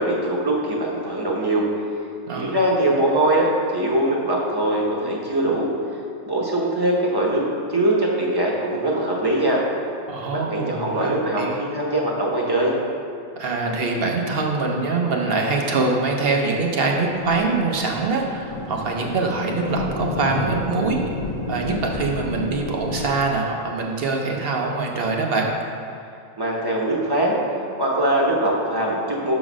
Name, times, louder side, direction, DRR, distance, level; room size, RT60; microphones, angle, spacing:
voice 1, 0.0-1.7 2.4-5.7 6.3-7.4 7.7-9.6 10.3-12.7 26.4-27.4 27.8-29.3, right 1 dB, 20° right, -3 dB, 0.9 m, -22 dB
voice 2, 10.1-11.6 13.4-21.0 21.5-25.5, right 3 dB, 50° right, 1 dB, 0.9 m, -24 dB
Thunder, 16.4-23.2, left 2 dB, 40° left, 0.6 m, -30 dB
6.1 x 4.0 x 6.1 m, 2.7 s
omnidirectional pair, 1.4 m